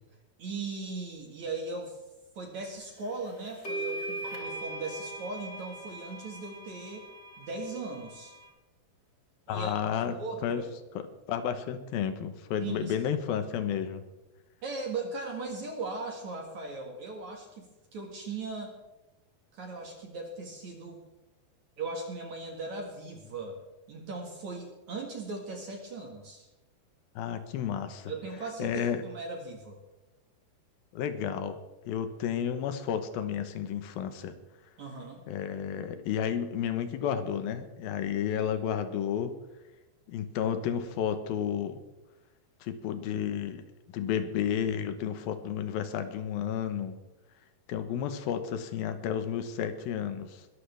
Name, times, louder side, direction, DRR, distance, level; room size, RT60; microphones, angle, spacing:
voice 1, 0.4-2.0 2.3-7.1 7.4-8.3 9.5-10.6 12.6-12.9 14.6-18.7 19.5-21.0 21.8-23.6 23.9-26.5 28.1-29.8 34.8-35.2 38.3-38.5, right 3 dB, 55° right, 1 dB, 2.7 m, -38 dB
sound 1, 3.0-3.1 3.6-8.5, right 1 dB, 35° left, 2.2 m, -40 dB
voice 2, 9.5-10.2 10.4-10.6 11.0-14.0 27.2-28.1 28.6-29.0 30.9-31.6 31.9-34.3 35.3-39.3 40.1-41.8 42.6-43.6 43.9-46.9 47.7-50.5, left 8 dB, 70° left, 9 dB, 2.7 m, -32 dB
21.5 x 13.5 x 3.4 m, 1.0 s
omnidirectional pair, 4.7 m